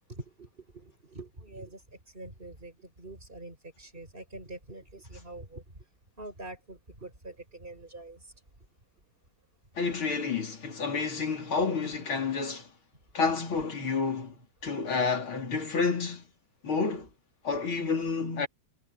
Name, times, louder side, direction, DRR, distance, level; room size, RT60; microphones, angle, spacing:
voice 1, 0.1-1.8 2.1-5.6 6.2-8.2, right 2 dB, 25° right, 5.8 m, -45 dB
voice 2, 9.8-12.7 13.1-14.4 14.6-16.2 16.6-17.1 17.4-18.5, left 4 dB, 75° left, 4.4 m, -29 dB
omnidirectional pair, 2.3 m